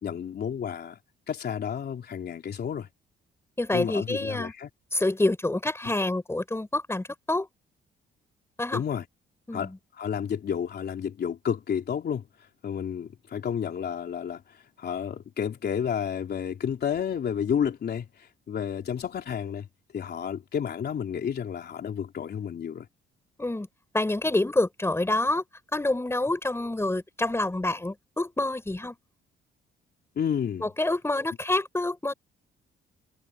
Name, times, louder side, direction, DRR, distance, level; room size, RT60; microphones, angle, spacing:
voice 1, 0.0-1.0 1.3-2.9 3.7-4.7 8.7-9.0 9.5-9.7 10.0-19.7 19.9-22.9 30.2-30.7, left 8 dB, 55° left, 3.5 m, -31 dB
voice 2, 3.6-4.5 4.9-7.5 8.6-8.8 9.5-9.8 23.4-23.7 23.9-25.4 25.7-29.0 30.6-32.1, left 2 dB, 10° left, 5.8 m, -27 dB
cardioid pair, 90°, 20 cm